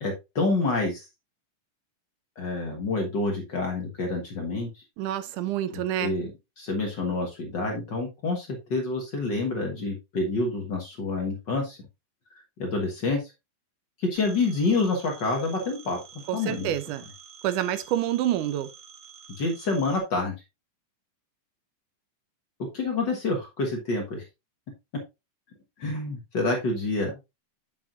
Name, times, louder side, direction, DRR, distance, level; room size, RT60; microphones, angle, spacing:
voice 1, 0.0-1.0 2.4-4.8 5.7-6.3 6.6-11.8 12.6-13.2 14.0-16.0 16.3-16.7 19.4-20.3 22.7-24.2 25.8-27.1, left 3 dB, 45° left, 1.6 m, -28 dB
voice 2, 5.0-6.1 16.3-17.1 17.4-18.7, right 12 dB, 90° right, 2.3 m, -27 dB
Telephone, 14.2-20.0, right 7 dB, 50° right, 1.9 m, -49 dB
7.4 x 7.2 x 2.5 m
omnidirectional pair, 3.5 m